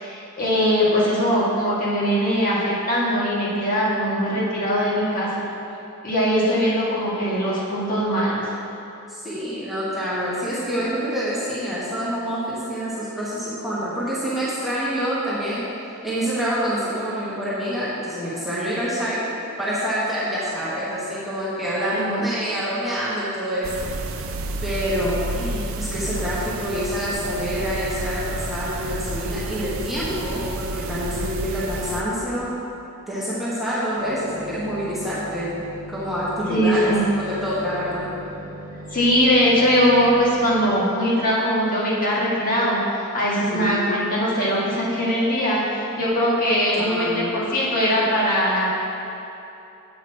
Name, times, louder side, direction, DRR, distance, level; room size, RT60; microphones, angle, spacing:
voice 1, 0.0-5.5 6.0-8.4 21.9-22.2 36.5-37.0 38.9-48.7, equal, 40° left, -7 dB, 1.7 m, -21 dB
voice 2, 9.1-15.6 16.0-19.2 19.6-23.9 24.6-32.5 33.1-35.5 35.9-38.1 43.3-43.9 46.8-47.3, equal, ahead, -10 dB, 1.3 m, -27 dB
sound 1, 23.6-32.0, right 2 dB, 65° right, 0.5 m, -30 dB
sound 2, 34.0-40.6, right 1 dB, 40° right, 1.4 m, -39 dB
7.8 x 4.9 x 6.1 m, 2.8 s
head